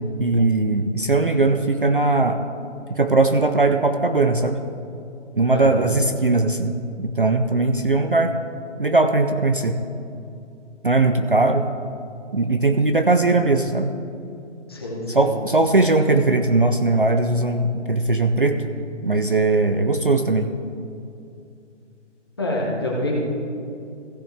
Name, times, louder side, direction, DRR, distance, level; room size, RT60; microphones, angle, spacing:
voice 1, 0.2-2.4 2.9-4.6 5.4-8.3 8.8-9.8 10.8-11.7 12.3-13.9 15.1-18.6 19.0-20.5, right 2 dB, 45° right, 7 dB, 0.5 m, -19 dB
voice 2, 5.5-5.9 14.7-15.3 22.4-23.2, left 1 dB, 20° left, -4 dB, 1.2 m, -26 dB
16.0 x 7.1 x 3.4 m, 2.6 s
hypercardioid pair, 180°, 37 cm